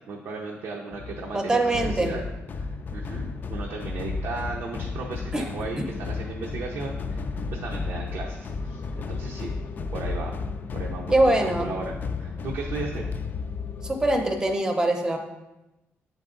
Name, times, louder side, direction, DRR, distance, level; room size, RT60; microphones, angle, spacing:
voice 1, 0.1-2.2 2.5-2.6 2.9-9.5 9.9-10.3 10.7-13.1, right 4 dB, 75° right, -1 dB, 0.7 m, -36 dB
sound 1, 0.9-14.6, left 4 dB, 40° left, 0.3 m, -33 dB
voice 2, 1.3-2.1 5.3-5.4 11.1-11.7 13.8-15.2, right 1 dB, 15° right, 4 dB, 0.7 m, -23 dB
7.7 x 4.0 x 3.8 m, 1.0 s
cardioid pair, 130°, 5 cm